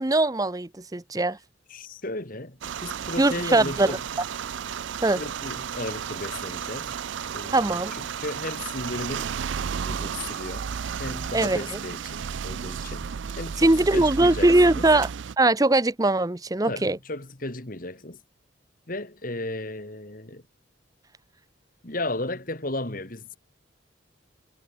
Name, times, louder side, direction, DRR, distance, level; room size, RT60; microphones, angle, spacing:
voice 1, 0.0-1.4 3.2-4.0 5.0-5.2 7.5-7.9 11.3-11.8 13.6-15.1 15.4-17.0, right 2 dB, 20° right, 0.7 m, -21 dB
voice 2, 1.7-4.1 5.2-7.0 7.3-9.4 9.8-10.7 11.0-13.1 13.4-14.9 16.7-18.2 18.9-20.4 21.8-23.4, left 2 dB, 45° left, 2.8 m, -35 dB
sound 1, 2.6-15.4, right 7 dB, 75° right, 0.5 m, -33 dB
head